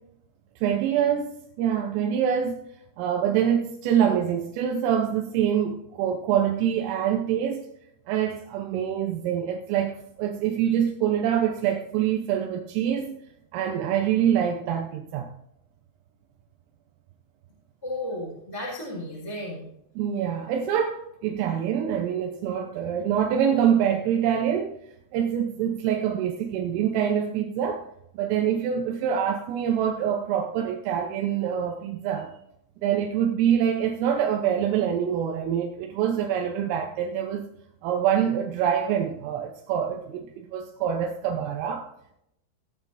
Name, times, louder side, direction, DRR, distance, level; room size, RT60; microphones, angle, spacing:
voice 1, 0.6-1.3 1.6-2.6 3.0-7.6 8.1-13.1 13.5-15.3 20.0-24.7 25.1-27.9 28.1-32.3 32.8-37.5 37.8-41.9, right 9 dB, 85° right, 2 dB, 3.5 m, -25 dB
voice 2, 17.8-19.7, left 1 dB, 5° left, -6 dB, 3.6 m, -34 dB
20.0 x 8.6 x 2.7 m, 0.77 s
omnidirectional pair, 5.8 m